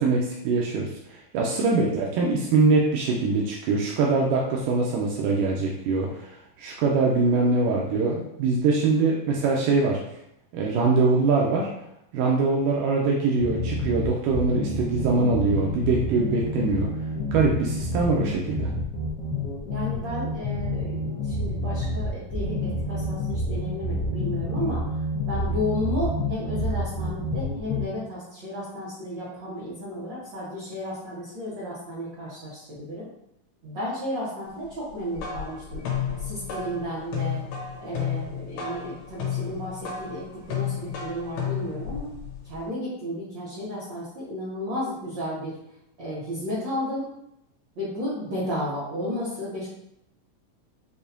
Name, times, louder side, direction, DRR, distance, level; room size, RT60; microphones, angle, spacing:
voice 1, 0.0-6.3 6.6-10.0 10.5-11.7 12.1-16.9 17.3-18.7, right 3 dB, 85° right, -2 dB, 2.2 m, -23 dB
sound 1, 13.4-27.8, left 1 dB, 65° left, 1.1 m, -28 dB
voice 2, 19.6-24.9 25.3-33.1 33.6-35.8 36.2-37.4 37.8-42.1 42.4-45.5 46.0-47.1 47.7-49.7, equal, 50° right, -10 dB, 1.4 m, -33 dB
sound 2, 34.9-42.6, left 8 dB, 80° left, 2.6 m, -32 dB
6.8 x 2.7 x 2.7 m, 0.79 s
omnidirectional pair, 3.8 m